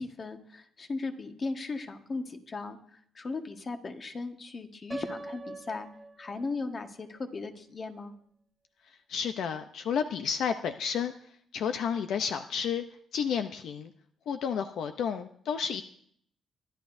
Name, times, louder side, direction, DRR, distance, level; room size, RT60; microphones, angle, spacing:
voice 1, 0.0-5.9 6.2-8.1, left 3 dB, 40° left, 5 dB, 1.5 m, -37 dB
Piano, 4.9-6.9, right 2 dB, 20° right, 1.2 m, -43 dB
voice 2, 9.1-11.1 11.5-12.8 13.1-13.9 14.3-15.8, left 7 dB, 75° left, 8 dB, 0.6 m, -31 dB
22.5 x 11.5 x 2.7 m, 0.64 s
cardioid pair, 90°, 0 cm